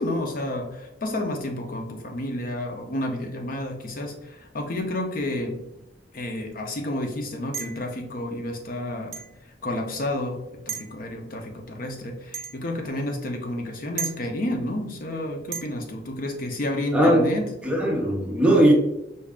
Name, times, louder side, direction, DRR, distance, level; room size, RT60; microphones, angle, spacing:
voice 1, 0.0-5.6 6.1-9.1 9.6-10.4 10.7-17.5, left 1 dB, 45° left, 3 dB, 0.6 m, -30 dB
sound 1, 7.5-7.9 9.1-9.3 10.7-10.9 12.3-12.6 14.0-14.2 15.5-15.7, right 7 dB, 55° right, 0.6 m, -33 dB
voice 2, 16.9-17.3 17.6-18.7, right 1 dB, 5° right, -1 dB, 0.7 m, -19 dB
5.3 x 2.4 x 3.5 m, 0.88 s
head